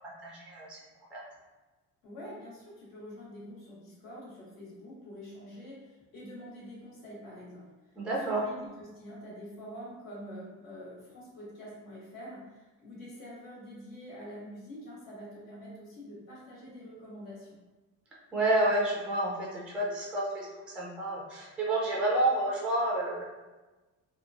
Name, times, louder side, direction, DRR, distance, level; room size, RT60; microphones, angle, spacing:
voice 1, 0.2-0.7 1.1-1.2 8.0-8.4 18.3-23.2, right 1 dB, 5° right, -4 dB, 0.3 m, -29 dB
voice 2, 2.0-17.6, equal, 80° left, -6 dB, 1.3 m, -46 dB
2.9 x 2.2 x 2.4 m, 1.2 s
cardioid pair, 170°, 33 cm